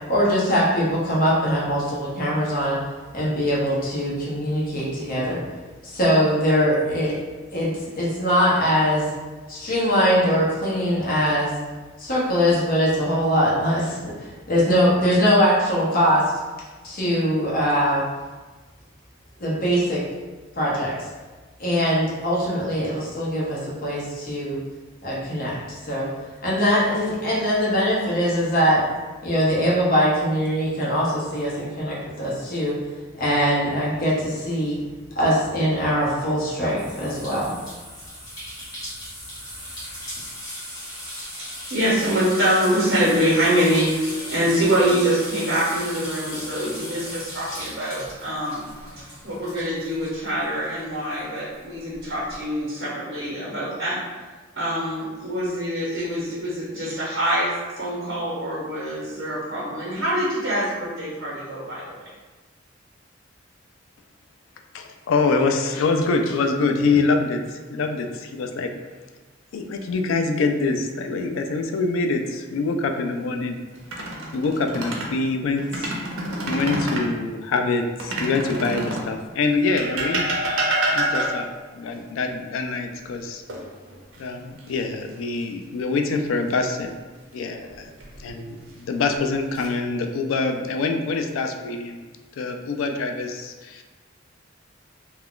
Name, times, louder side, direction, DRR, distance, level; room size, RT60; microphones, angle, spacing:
voice 1, 0.1-2.8 3.1-5.4 5.8-7.2 7.5-9.1 9.5-11.5 12.0-16.3 16.8-18.0 19.4-20.0 20.6-20.9 21.6-24.6 25.0-26.1 26.4-28.9 29.2-32.8 33.2-34.8 35.2-37.6, equal, 45° left, -6 dB, 0.8 m, -22 dB
sound 1, 36.8-50.8 51.1-52.3, equal, 20° left, 1.1 m, -37 dB
voice 2, 41.7-48.6 49.2-54.0 54.6-57.5 57.8-62.1, equal, 55° right, -7 dB, 0.9 m, -24 dB
voice 3, 64.7-68.7 69.5-73.6 74.0-74.1 74.3-75.9 76.5-80.3 80.9-81.5 81.7-83.4 84.2-86.9 87.3-87.9 88.2-92.1 92.4-93.8, left 3 dB, 80° left, 5 dB, 0.3 m, -25 dB
sound 2, 73.8-75.1 75.6-77.1 78.0-79.1 79.8-81.6 83.5-84.2 84.6-84.8 87.7-88.3 89.0-89.7, right 1 dB, 80° right, 0.6 m, -27 dB
2.4 x 2.2 x 3.5 m, 1.3 s
head